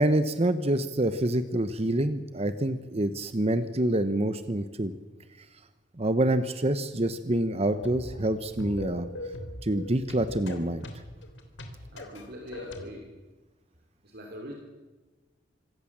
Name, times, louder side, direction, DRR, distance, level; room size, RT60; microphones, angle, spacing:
voice 1, 0.0-4.9 6.0-9.1 9.6-10.9, right 1 dB, 35° right, 11 dB, 1.0 m, -26 dB
sound 1, 7.7-12.8, left 1 dB, 85° left, 3.3 m, -41 dB
voice 2, 11.9-13.1 14.0-14.5, equal, 55° right, 1 dB, 3.2 m, -42 dB
26.0 x 17.5 x 7.4 m, 1.2 s
head